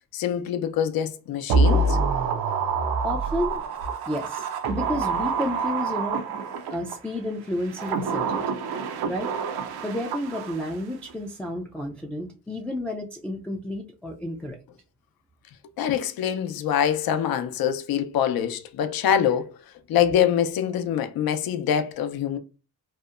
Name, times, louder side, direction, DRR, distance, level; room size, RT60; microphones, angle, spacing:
voice 1, 0.1-2.0 15.8-19.5 19.9-22.4, left 9 dB, 65° left, 0.5 m, -24 dB
sound 1, 1.5-7.0 7.6-10.8 11.1-11.2, right 4 dB, 80° right, 0.5 m, -26 dB
voice 2, 3.0-3.6 4.1-6.2 6.7-8.6 9.0-9.3 9.8-14.6, left 1 dB, 5° left, 0.3 m, -31 dB
2.8 x 2.1 x 2.3 m
cardioid pair, 65°, 38 cm